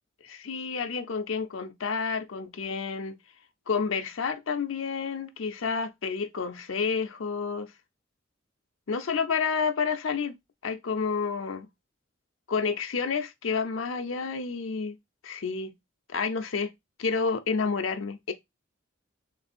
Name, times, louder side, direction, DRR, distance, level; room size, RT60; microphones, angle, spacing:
voice 1, 0.2-3.2 3.7-7.7 8.9-10.3 10.6-11.7 12.5-15.0 15.2-15.7 16.1-16.7 17.0-18.3, left 5 dB, 80° left, 0.6 m, -30 dB
3.4 x 3.3 x 4.3 m
head